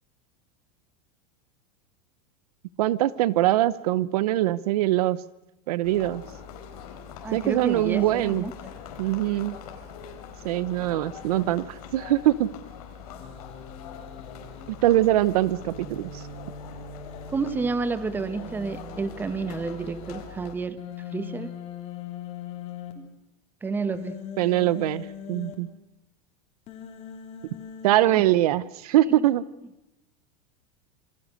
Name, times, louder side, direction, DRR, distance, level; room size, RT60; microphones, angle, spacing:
voice 1, 2.8-5.2 5.7-6.2 7.3-8.4 9.0-9.6 10.4-12.5 14.7-16.2 24.4-25.7 27.8-29.4, right 14 dB, 80° right, 18 dB, 0.9 m, -23 dB
sound 1, 5.8-20.6, left 7 dB, 80° left, 4.7 m, -43 dB
voice 2, 7.2-8.5 13.1-13.2 17.3-20.8 21.1-21.5 23.0-23.1 23.6-24.2 28.1-28.2, right 4 dB, 10° right, 12 dB, 1.2 m, -30 dB
Human voice, 13.2-14.7 15.5-17.5 18.2-20.1 20.8-22.9 23.9-25.5 26.7-27.9, left 6 dB, 35° left, 3.6 m, -41 dB
27.5 x 20.5 x 6.5 m, 0.89 s
supercardioid pair, 165°, 19 cm